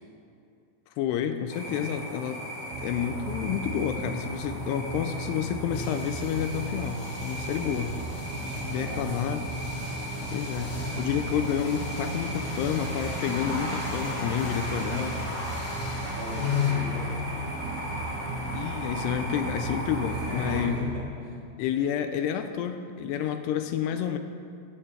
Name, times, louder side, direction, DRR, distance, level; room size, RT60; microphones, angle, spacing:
voice 1, 1.0-2.4 2.8-8.0 8.6-9.4 10.3-15.2 18.5-20.8 21.6-24.2, left 9 dB, 85° left, 8 dB, 2.6 m, -29 dB
sound 1, 1.5-20.7, equal, 50° left, 1.0 m, -36 dB
sound 2, 2.7-21.0, right 3 dB, 75° right, 2.3 m, -37 dB
sound 3, 5.7-16.7, left 1 dB, 30° left, 1.7 m, -46 dB
voice 2, 8.5-9.3 10.7-10.9 16.2-17.2 20.1-21.4, left 6 dB, 30° right, -8 dB, 3.5 m, -32 dB
15.0 x 14.0 x 3.4 m, 2.4 s
omnidirectional pair, 4.8 m